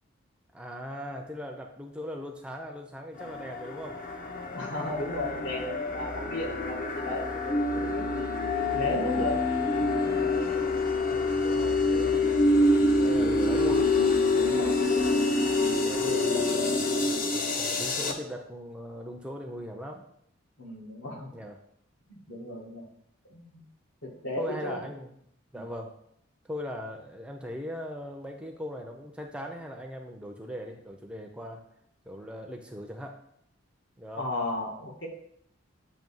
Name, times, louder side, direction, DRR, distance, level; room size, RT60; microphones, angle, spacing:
voice 1, 0.5-4.0 11.0-12.2 13.0-13.8 15.7-20.1 21.3-21.6 24.4-25.1 25.5-25.9 26.5-31.6 32.1-33.2 34.0-34.2, equal, 5° right, 3 dB, 0.5 m, -39 dB
sound 1, 3.2-18.1, left 2 dB, 45° left, 0.7 m, -26 dB
voice 2, 4.6-8.3 8.7-9.5 14.2-15.2 20.6-21.3 22.1-22.8 23.3-23.4 24.0-24.8 25.5-25.6 34.2-35.1, left 1 dB, 65° left, -1 dB, 1.4 m, -35 dB
7.6 x 2.7 x 5.4 m, 0.70 s
head